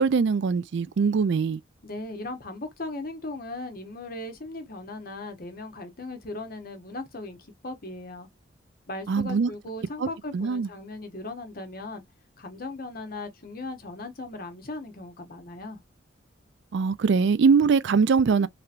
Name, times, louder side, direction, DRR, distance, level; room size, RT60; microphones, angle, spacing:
voice 1, 0.0-1.6 9.1-9.5 10.0-10.1 10.3-10.7 16.7-18.5, right 5 dB, 65° right, 0.4 m, -22 dB
voice 2, 1.8-8.3 8.9-12.0 12.4-15.8, left 2 dB, 50° left, 0.9 m, -38 dB
3.3 x 2.9 x 2.4 m
head